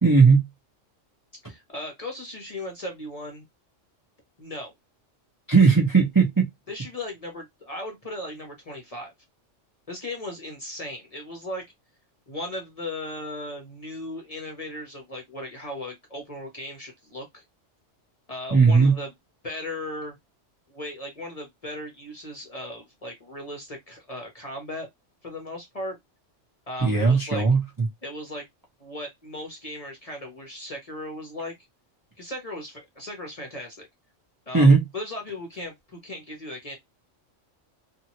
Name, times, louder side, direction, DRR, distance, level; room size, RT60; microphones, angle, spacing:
voice 1, 0.0-0.4 5.5-6.5 18.5-18.9 26.8-27.6 34.5-34.8, right 4 dB, 20° right, 0.6 m, -17 dB
voice 2, 1.5-3.5 4.4-4.7 6.7-9.1 9.9-11.6 12.3-17.4 18.3-19.1 19.4-20.1 20.7-24.9 25.2-26.0 26.7-27.5 28.0-28.5 28.8-31.5 32.2-33.9 34.5-36.7, left 1 dB, 35° left, 0.7 m, -37 dB
2.8 x 2.4 x 2.7 m
omnidirectional pair, 1.3 m